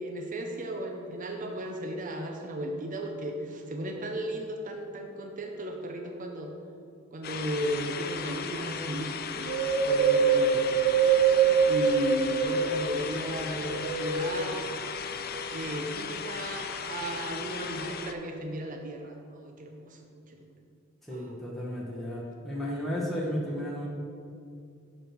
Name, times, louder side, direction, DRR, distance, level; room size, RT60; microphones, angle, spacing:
voice 1, 0.0-6.5 7.1-10.7 11.0-11.3 11.6-14.7 15.5-20.4 21.1-21.3, right 1 dB, 40° right, 3 dB, 0.7 m, -35 dB
sound 1, 7.2-18.1, left 6 dB, 45° left, 0.4 m, -36 dB
Wind, 9.5-13.0 13.6-14.8 15.4-15.5, right 6 dB, 70° right, 0.9 m, -24 dB
voice 2, 21.0-23.9, equal, ahead, -5 dB, 1.1 m, -33 dB
6.4 x 6.0 x 6.1 m, 2.5 s
head